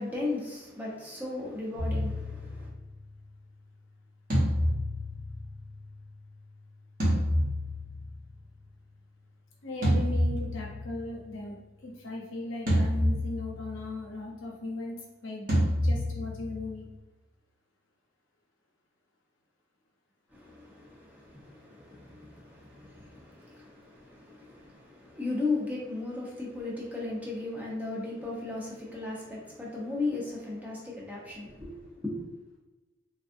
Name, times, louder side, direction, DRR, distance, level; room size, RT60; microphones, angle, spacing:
voice 1, 0.0-2.7 20.3-32.2, left 3 dB, 10° right, -5 dB, 0.8 m, -36 dB
sound 1, 1.8-3.1 4.3-6.0 7.0-8.3 9.8-11.2 12.7-13.8 15.5-16.9, equal, 45° right, 1.0 m, -28 dB
voice 2, 9.6-11.6 11.8-15.5 15.8-16.8, left 2 dB, 85° left, -1 dB, 0.8 m, -37 dB
3.6 x 2.4 x 2.5 m, 1.1 s
head